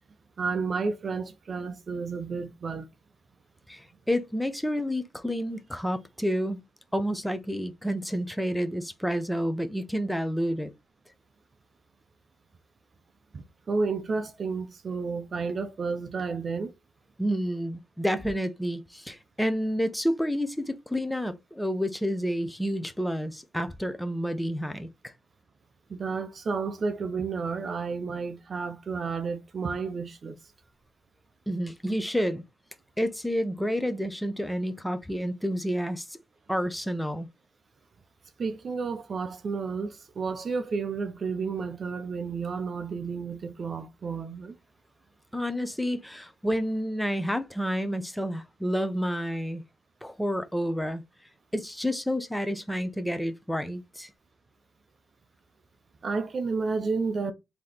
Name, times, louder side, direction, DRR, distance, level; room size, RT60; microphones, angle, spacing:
voice 1, 0.4-2.9 13.3-16.7 25.9-30.4 38.4-44.6 56.0-57.3, right 4 dB, 40° right, 0.6 m, -31 dB
voice 2, 3.7-6.6 6.9-10.7 17.2-25.1 31.5-32.4 33.0-36.2 36.5-37.3 45.3-49.6 50.0-51.0 51.5-54.1, equal, 5° left, 0.7 m, -29 dB
3.8 x 2.9 x 4.9 m
cardioid pair, 90°, 0 cm